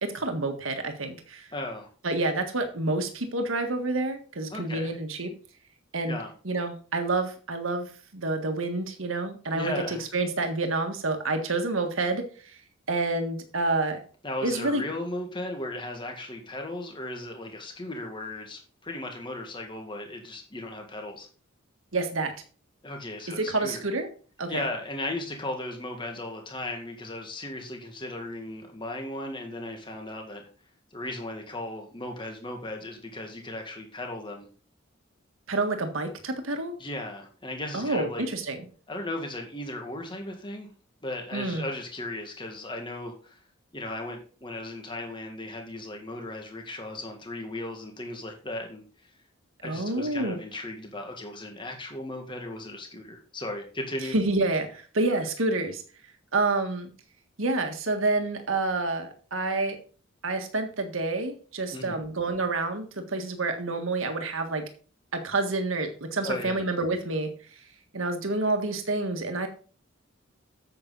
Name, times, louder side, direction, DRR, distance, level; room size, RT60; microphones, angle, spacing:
voice 1, 0.0-1.5 2.0-5.3 5.9-6.2 6.4-12.6 12.9-14.0 14.4-14.8 21.9-22.3 23.4-24.1 24.4-24.6 35.5-36.8 37.7-38.7 41.3-41.7 49.6-50.4 54.1-55.8 56.3-56.9 57.4-59.8 60.2-64.6 65.1-67.3 67.9-69.5, right 2 dB, 75° right, 6 dB, 1.7 m, -28 dB
voice 2, 1.5-1.9 4.5-4.9 6.1-6.3 9.5-10.0 14.2-21.3 22.8-23.8 24.5-30.5 30.9-34.5 36.8-38.3 38.9-40.7 41.0-43.4 43.7-48.8 49.6-54.1 61.7-62.0 66.2-66.6, left 1 dB, 25° left, 3 dB, 1.9 m, -36 dB
9.2 x 7.6 x 4.0 m, 0.39 s
head